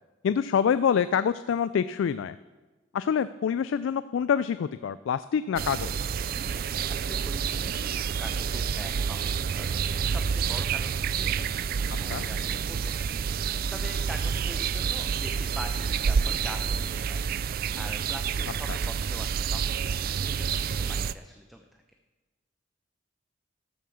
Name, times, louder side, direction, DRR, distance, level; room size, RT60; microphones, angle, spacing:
voice 1, 0.2-2.4 2.9-6.1 12.1-12.2, left 7 dB, 75° left, 14 dB, 0.3 m, -26 dB
sound 1, 5.6-21.1, right 6 dB, 50° right, 0.3 m, -29 dB
voice 2, 6.9-13.1 13.4-17.4 17.8-21.8, equal, ahead, 3 dB, 0.6 m, -44 dB
12.5 x 7.3 x 6.9 m, 1.2 s
head